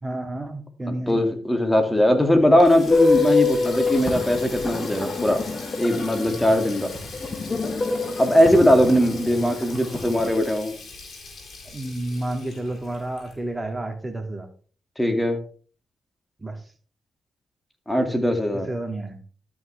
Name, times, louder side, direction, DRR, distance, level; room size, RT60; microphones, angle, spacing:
voice 1, 0.0-1.2 8.8-9.5 11.7-14.5 16.4-16.6 18.5-19.2, right 1 dB, 15° right, 5 dB, 2.3 m, -31 dB
voice 2, 0.9-5.4 5.8-6.9 8.2-10.7 15.0-15.4 17.9-18.7, equal, 10° left, 5 dB, 2.3 m, -20 dB
Water tap faucet, 2.1-13.8, left 3 dB, 60° left, 4.0 m, -41 dB
sound 1, 2.9-10.3, left 3 dB, 40° left, 2.4 m, -26 dB
12.5 x 6.1 x 3.4 m, 0.41 s
cardioid pair, 65°, 0 cm